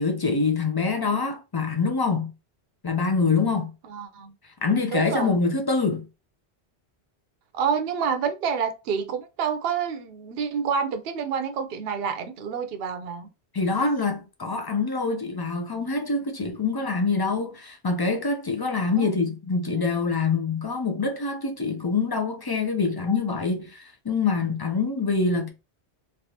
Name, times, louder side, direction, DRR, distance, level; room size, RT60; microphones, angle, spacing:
voice 1, 0.0-2.3 2.8-3.7 4.6-6.0 13.5-25.5, left 4 dB, 35° left, 0.4 m, -25 dB
voice 2, 3.9-4.3 4.9-5.3 7.5-13.3 19.0-19.1, right 6 dB, 65° right, 0.8 m, -28 dB
3.3 x 2.4 x 2.8 m
omnidirectional pair, 1.1 m